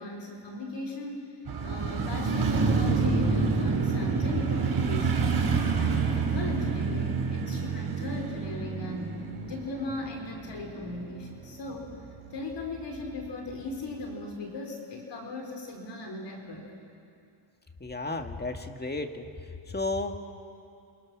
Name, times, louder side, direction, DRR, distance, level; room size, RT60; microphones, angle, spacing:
voice 1, 0.0-1.3 1.6-5.4 5.8-11.9 12.3-16.7, left 2 dB, 55° left, 2 dB, 4.5 m, -38 dB
Motorcycle, 1.5-11.6 11.9-12.0, right 4 dB, 50° right, 4.0 m, -28 dB
voice 2, 17.8-19.2 19.7-20.2, left 2 dB, 20° left, 5 dB, 2.0 m, -33 dB
28.5 x 26.5 x 6.2 m, 2.6 s
cardioid pair, 85°, 49 cm